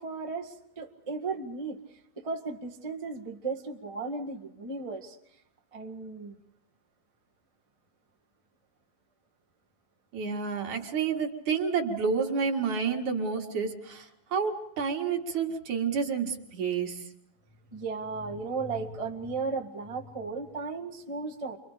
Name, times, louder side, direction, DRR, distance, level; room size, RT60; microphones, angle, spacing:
voice 1, 0.0-1.8 2.2-5.2 5.7-6.4 17.7-21.6, right 4 dB, 20° right, 0 dB, 0.8 m, -35 dB
voice 2, 10.1-17.0, right 5 dB, 55° right, 2 dB, 3.4 m, -29 dB
29.5 x 24.0 x 5.1 m, 0.78 s
omnidirectional pair, 4.2 m